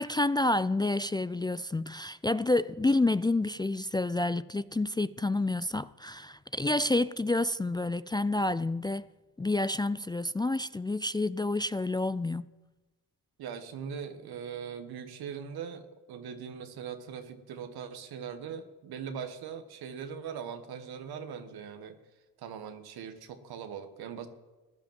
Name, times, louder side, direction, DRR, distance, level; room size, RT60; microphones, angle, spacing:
voice 1, 0.0-9.1 9.4-12.5, left 2 dB, 10° left, 0.4 m, -29 dB
voice 2, 13.4-22.0 22.4-24.3, right 7 dB, 75° right, 1.6 m, -41 dB
15.5 x 10.5 x 7.5 m
supercardioid pair, 50°, 38 cm